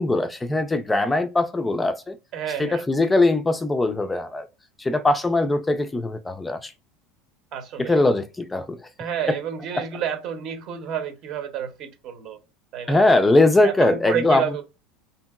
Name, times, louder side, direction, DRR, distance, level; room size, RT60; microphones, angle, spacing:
voice 1, 0.0-2.2 2.6-4.5 4.8-6.7 7.8-8.8 9.7-9.8 12.9-14.4, left 2 dB, 10° left, 0.3 m, -21 dB
voice 2, 2.3-2.8 7.5-8.0 9.0-12.4 12.7-13.0 13.6-14.6, right 8 dB, 50° right, 0.7 m, -29 dB
2.8 x 2.7 x 2.3 m
supercardioid pair, 120°, 0 cm